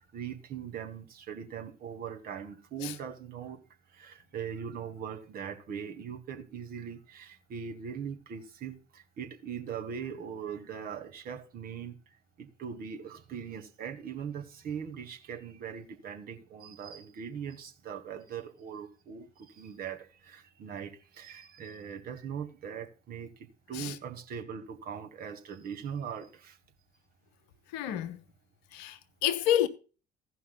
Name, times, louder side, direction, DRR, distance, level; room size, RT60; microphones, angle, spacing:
voice 1, 0.0-3.6 3.9-11.9 12.4-26.6 28.7-28.8, right 7 dB, 45° right, 1.7 m, -41 dB
voice 2, 27.7-28.2 28.7-29.7, left 11 dB, 60° left, 0.9 m, -29 dB
16.0 x 5.5 x 3.8 m
figure-of-eight pair, 55°, 21 cm